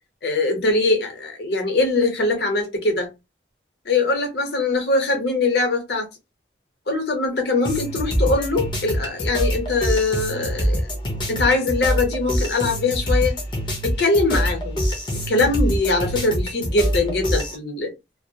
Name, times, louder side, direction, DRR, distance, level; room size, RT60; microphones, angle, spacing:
voice 1, 0.2-3.1 3.8-6.1 6.9-10.9 11.3-13.4 13.8-14.8 15.3-17.9, left 3 dB, 60° left, 0.8 m, -22 dB
sound 1, 7.6-17.6, equal, 25° left, 0.5 m, -25 dB
2.2 x 2.0 x 2.7 m
head